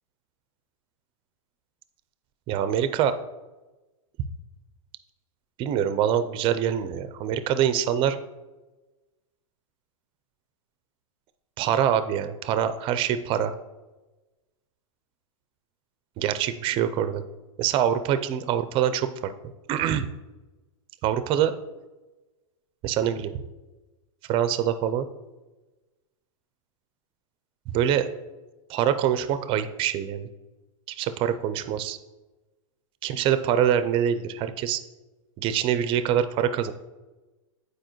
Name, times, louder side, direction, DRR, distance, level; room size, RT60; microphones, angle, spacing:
voice 1, 2.5-3.1 5.6-8.2 11.6-13.5 16.2-17.2 17.6-19.3 19.7-20.1 21.0-21.5 22.8-23.3 24.3-25.1 27.7-28.1 28.7-30.3 31.0-32.0 33.0-34.8 35.4-36.7, right 9 dB, 30° right, 11 dB, 0.5 m, -24 dB
8.8 x 4.8 x 3.1 m, 1.1 s
hypercardioid pair, 140°, 18 cm